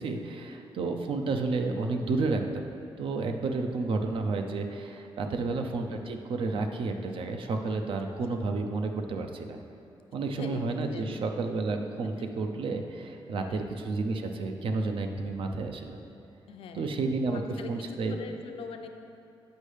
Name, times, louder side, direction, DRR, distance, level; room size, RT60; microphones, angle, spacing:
voice 1, 0.0-2.7 3.0-9.6 10.1-16.0 16.7-17.4 17.7-18.2, right 3 dB, 70° right, 4 dB, 0.5 m, -31 dB
voice 2, 5.3-5.6 8.1-8.4 10.2-11.3 12.0-12.3 13.3-13.7 16.5-18.9, left 5 dB, 80° left, 5 dB, 0.5 m, -44 dB
8.1 x 5.3 x 3.3 m, 2.8 s
cardioid pair, 120°, 9 cm